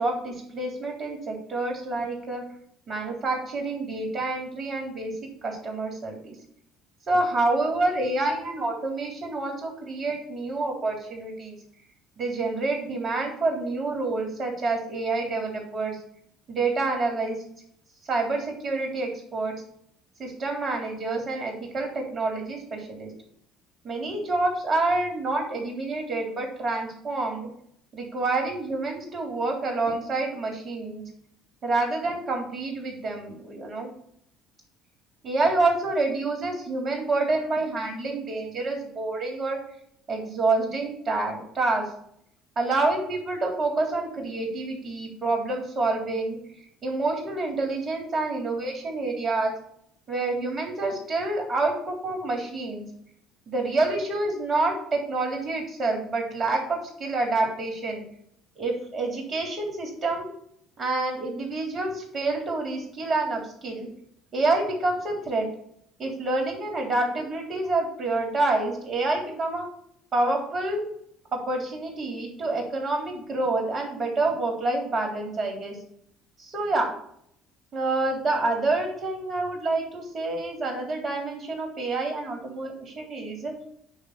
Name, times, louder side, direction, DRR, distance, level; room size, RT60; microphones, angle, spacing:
voice 1, 0.0-2.4 2.9-5.1 5.4-6.3 7.1-11.6 12.2-16.0 16.5-17.3 18.0-19.5 20.2-23.1 23.8-27.5 27.9-31.0 31.6-33.9 35.2-39.6 40.1-41.8 42.6-46.4 46.8-49.5 50.1-52.8 53.5-58.0 58.6-60.3 60.8-63.9 64.3-65.5 66.0-69.7 70.1-70.8 71.3-75.8 76.4-76.9 77.7-83.5, right 2 dB, 45° right, 1 dB, 3.6 m, -27 dB
9.7 x 3.4 x 6.8 m, 0.68 s
hypercardioid pair, 60°, 0 cm